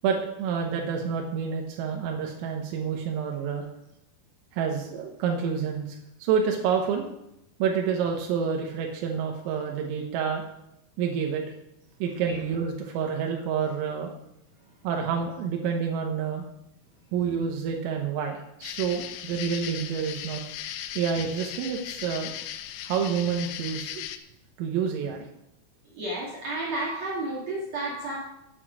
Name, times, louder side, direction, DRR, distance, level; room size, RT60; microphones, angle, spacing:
voice 1, 0.0-3.7 4.5-5.8 6.2-7.1 7.6-10.4 11.0-11.4 12.0-14.1 14.8-16.4 17.1-20.4 21.0-22.3 22.8-24.0 24.6-25.3, right 7 dB, 85° right, 2 dB, 3.7 m, -28 dB
sound 1, 18.6-24.2, left 11 dB, 90° left, 3.4 m, -37 dB
voice 2, 25.9-28.2, right 2 dB, 65° right, -4 dB, 1.7 m, -31 dB
9.2 x 8.2 x 6.2 m, 0.82 s
omnidirectional pair, 5.9 m